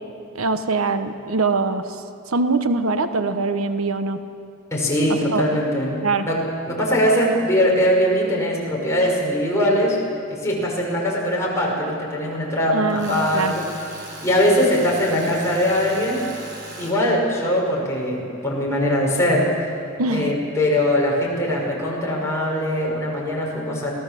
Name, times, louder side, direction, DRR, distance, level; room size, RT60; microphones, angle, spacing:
voice 1, 0.3-4.2 5.3-5.4 6.0-6.3 12.7-13.5 20.0-20.3, right 3 dB, 85° right, 9 dB, 1.1 m, -23 dB
voice 2, 4.7-6.0 6.3-10.0 10.3-13.6 14.2-16.3 16.8-19.7 20.1-23.9, equal, 15° left, -4 dB, 5.7 m, -21 dB
Tools, 12.9-17.0, right 2 dB, 55° right, 4.5 m, -38 dB
26.0 x 17.5 x 7.6 m, 2.7 s
head